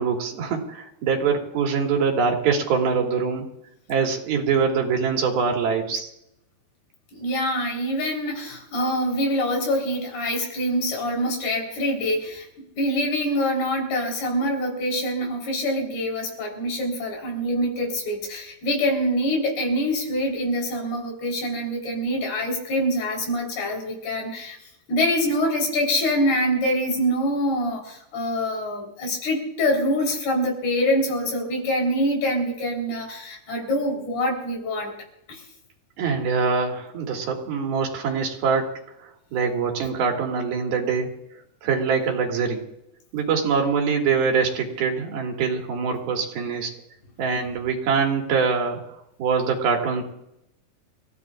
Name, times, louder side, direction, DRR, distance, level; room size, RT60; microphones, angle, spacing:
voice 1, 0.0-3.5 3.9-6.1 36.0-38.7 39.0-41.1 41.6-42.6 43.1-46.7 47.2-48.8 49.2-50.0, right 5 dB, 75° right, 1 dB, 3.9 m, -24 dB
voice 2, 7.1-24.6 24.9-34.9 35.3-35.4, equal, 85° left, 0 dB, 5.9 m, -25 dB
29.5 x 15.0 x 2.5 m, 0.81 s
omnidirectional pair, 4.4 m